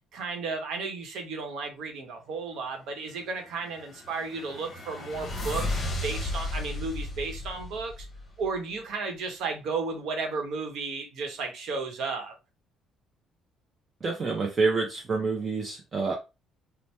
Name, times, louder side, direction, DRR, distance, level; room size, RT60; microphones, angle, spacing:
voice 1, 0.1-8.1 8.4-12.3, right 4 dB, 70° right, 0.9 m, -34 dB
sound 1, 3.6-8.6, left 2 dB, 35° left, 0.9 m, -34 dB
voice 2, 14.0-16.1, right 4 dB, 30° right, 0.6 m, -27 dB
2.8 x 2.1 x 3.3 m
cardioid pair, 125°, 0 cm